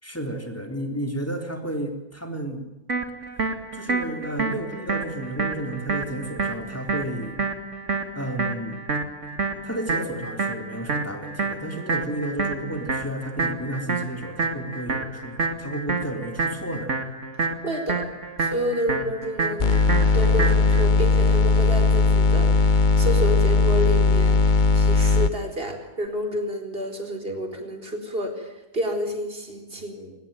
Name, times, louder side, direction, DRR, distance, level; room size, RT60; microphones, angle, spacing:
voice 1, 0.0-2.7 3.7-7.5 8.1-8.8 9.6-16.9, right 1 dB, 10° left, 5 dB, 3.8 m, -32 dB
sound 1, 2.9-20.9, right 4 dB, 55° right, 2.6 m, -29 dB
voice 2, 17.6-18.1 18.4-19.9 20.1-24.4 24.7-30.2, equal, 40° right, 5 dB, 4.6 m, -29 dB
sound 2, 19.6-25.3, left 4 dB, 40° left, 0.9 m, -18 dB
22.5 x 20.5 x 9.2 m, 0.96 s
omnidirectional pair, 1.6 m